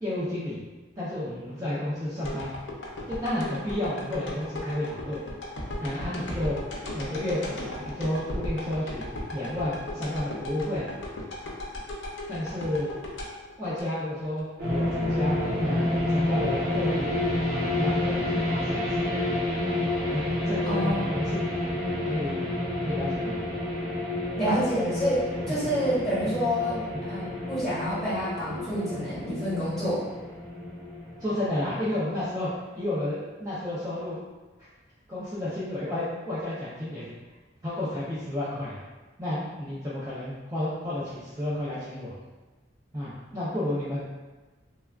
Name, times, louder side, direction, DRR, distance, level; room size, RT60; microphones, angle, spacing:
voice 1, 0.0-0.6 1.0-2.5 3.1-5.2 5.8-6.6 6.9-9.0 9.3-10.9 12.3-12.9 13.6-17.1 17.5-19.0 20.1-22.4 22.8-23.3 25.5-25.6 31.2-32.5 32.8-34.2 35.1-37.1 37.6-38.8 39.2-42.2 42.9-44.1, left 1 dB, 20° right, -11 dB, 0.5 m, -31 dB
sound 1, 2.2-14.4 14.8-14.9, left 1 dB, 75° left, 0.6 m, -36 dB
sound 2, 14.6-32.3, left 1 dB, 55° right, 1.2 m, -29 dB
voice 2, 20.6-21.1 24.4-30.0, equal, 5° left, -12 dB, 1.4 m, -28 dB
3.3 x 2.3 x 2.3 m, 1.2 s
head